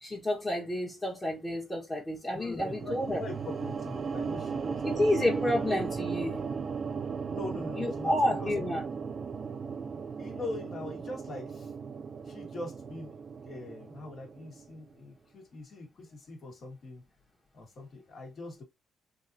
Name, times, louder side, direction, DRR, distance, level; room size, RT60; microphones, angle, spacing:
voice 1, 0.0-3.2 4.8-6.4 7.8-8.8, left 1 dB, 20° left, 1.4 m, -30 dB
voice 2, 2.3-5.0 7.3-8.7 10.2-11.7 12.2-17.0 17.5-18.6, left 2 dB, 55° left, 1.7 m, -42 dB
sound 1, 2.6-14.8, right 5 dB, 40° right, 0.4 m, -36 dB
3.7 x 2.7 x 2.7 m
cardioid pair, 90°, 0 cm